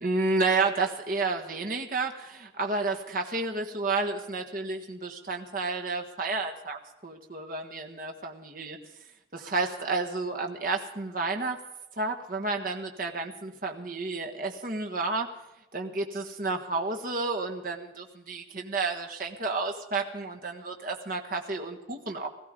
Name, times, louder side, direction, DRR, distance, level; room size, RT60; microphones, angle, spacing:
voice 1, 0.0-8.8 9.3-11.6 12.0-15.3 15.7-22.3, right 3 dB, 50° right, 3 dB, 1.4 m, -31 dB
17.0 x 15.0 x 5.2 m, 0.94 s
head